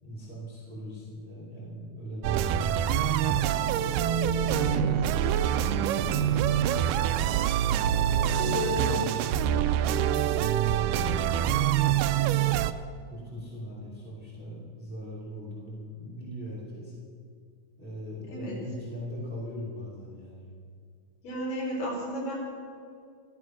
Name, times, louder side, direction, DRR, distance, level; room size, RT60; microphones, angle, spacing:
voice 1, 0.0-3.5 4.3-7.2 7.8-12.2 13.1-16.9 17.8-20.5, left 1 dB, 15° right, -6 dB, 3.6 m, -39 dB
sound 1, 2.2-12.7, right 10 dB, 85° right, 2.2 m, -25 dB
voice 2, 4.5-4.9 8.5-9.0 18.3-18.6 21.2-22.4, left 1 dB, 80° left, -3 dB, 5.7 m, -33 dB
14.5 x 14.0 x 6.3 m, 2.2 s
omnidirectional pair, 3.8 m